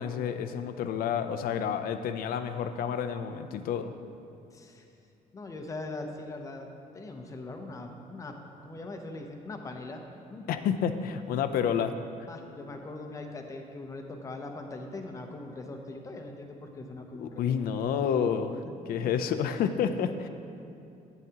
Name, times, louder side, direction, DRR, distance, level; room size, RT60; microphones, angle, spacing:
voice 1, 0.0-3.9 10.5-11.9 17.2-18.6 18.9-20.3, left 8 dB, 75° left, 9 dB, 0.5 m, -29 dB
voice 2, 4.5-4.8 5.3-6.7 6.9-8.4 8.6-10.0 10.3-10.5 12.3-17.6 18.6-18.7 19.0-19.1, left 2 dB, 20° left, 4 dB, 0.6 m, -41 dB
11.0 x 9.2 x 2.9 m, 2.7 s
cardioid pair, 180°, 15 cm